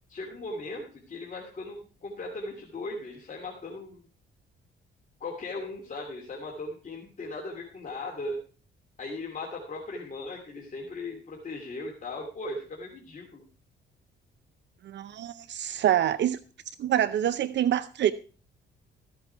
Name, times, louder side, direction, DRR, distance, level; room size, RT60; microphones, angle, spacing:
voice 1, 0.1-4.0 5.2-8.4 9.0-13.4, left 2 dB, 40° left, 3.0 m, -38 dB
voice 2, 14.8-16.4 16.8-18.1, right 11 dB, 65° right, 0.6 m, -26 dB
15.0 x 8.4 x 4.6 m
cardioid pair, 90°, 20 cm